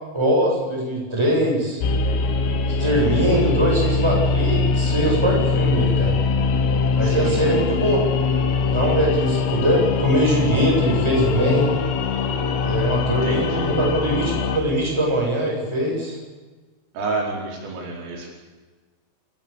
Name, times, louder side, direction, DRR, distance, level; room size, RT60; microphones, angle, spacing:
voice 1, 0.1-1.8 2.8-6.2 7.0-8.0 8.7-11.7 12.6-16.2, right 1 dB, 5° right, -2 dB, 7.6 m, -22 dB
sound 1, 1.8-14.6, left 4 dB, 85° left, 4.4 m, -22 dB
voice 2, 7.0-7.4 13.0-13.7 17.0-18.3, right 3 dB, 80° right, 0 dB, 7.2 m, -29 dB
28.0 x 18.5 x 7.2 m, 1.3 s
omnidirectional pair, 5.8 m